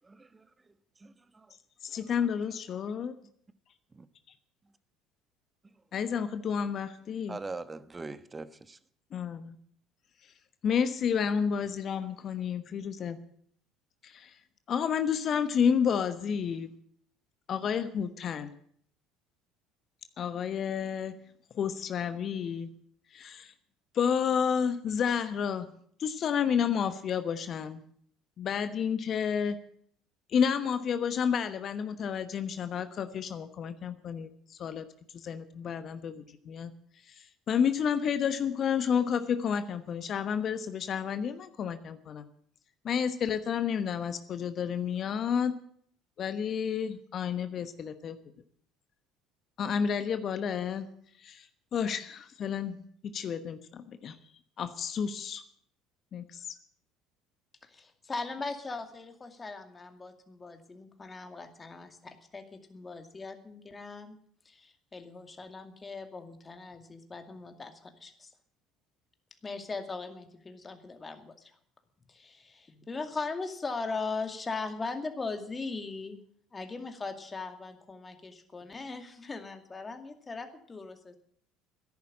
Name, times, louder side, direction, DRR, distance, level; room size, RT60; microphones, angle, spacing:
voice 1, 0.0-0.5 1.0-1.5 3.9-4.1 7.3-8.8, right 3 dB, 20° right, 1.2 m, -42 dB
voice 2, 1.8-3.1 5.9-7.4 9.1-9.6 10.6-13.2 14.0-14.4 14.7-16.7 17.5-18.5 20.2-21.2 21.5-22.7 23.1-23.5 23.9-25.7 26.0-27.8 28.4-29.6 30.3-34.9 35.1-36.7 37.0-42.3 42.8-45.5 46.2-48.2 49.6-50.9 51.2-52.8 53.0-54.2 54.6-55.4 56.1-56.5, left 7 dB, 50° left, 1.1 m, -30 dB
voice 3, 57.6-62.4 62.7-64.2 64.5-68.3 69.4-71.5 72.1-76.2 76.5-81.2, left 3 dB, 25° left, 2.3 m, -39 dB
14.0 x 11.0 x 8.7 m
hypercardioid pair, 65°, 0 cm